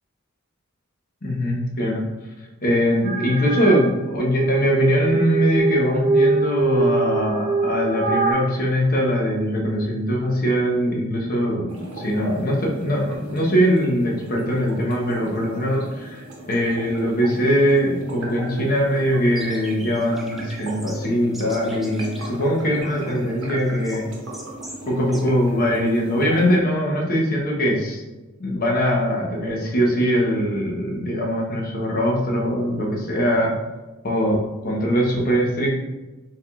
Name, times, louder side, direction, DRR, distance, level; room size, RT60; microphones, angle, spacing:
voice 1, 1.2-2.1 2.6-24.1 24.9-28.0 28.4-33.6 34.0-35.7, equal, 45° left, -1 dB, 0.9 m, -21 dB
sound 1, 3.0-3.8 4.3-8.3, right 3 dB, 30° right, 0.8 m, -22 dB
sound 2, 11.7-26.6, right 1 dB, 80° right, 1.0 m, -38 dB
sound 3, 19.4-24.9 25.1-25.2, right 1 dB, ahead, 0.5 m, -43 dB
4.7 x 3.5 x 2.4 m, 1.1 s
head